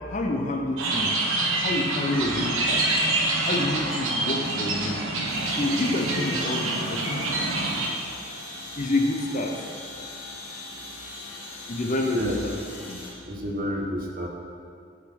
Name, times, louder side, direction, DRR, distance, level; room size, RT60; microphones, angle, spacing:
voice 1, 0.1-1.1 1.6-2.9 3.5-5.0 5.6-7.3 8.8-9.6 11.7-12.6 12.9-13.0, left 2 dB, 35° left, 3 dB, 0.7 m, -28 dB
sound 1, 0.8-7.9, right 2 dB, 70° right, 1.3 m, -26 dB
Military Aircraft Ambient Noise, 5.3-13.1, left 2 dB, 90° left, 2.2 m, -40 dB
voice 2, 13.2-14.3, equal, 40° right, 0 dB, 1.1 m, -29 dB
8.9 x 6.0 x 6.1 m, 2.3 s
head